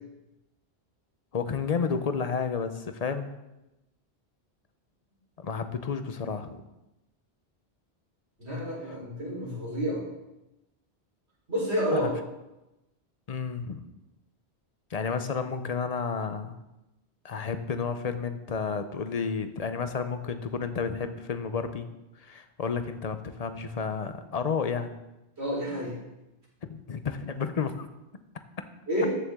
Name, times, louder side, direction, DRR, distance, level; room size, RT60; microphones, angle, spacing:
voice 1, 1.3-3.3 5.4-6.6 11.9-12.1 13.3-13.9 14.9-16.5 17.2-21.9 22.2-24.9 26.6-27.9, left 5 dB, 40° left, 9 dB, 0.8 m, -31 dB
voice 2, 8.4-10.0 11.5-12.1 25.4-26.0 28.9-29.1, equal, 80° right, -5 dB, 4.4 m, -29 dB
14.0 x 7.0 x 3.6 m, 0.96 s
omnidirectional pair, 1.1 m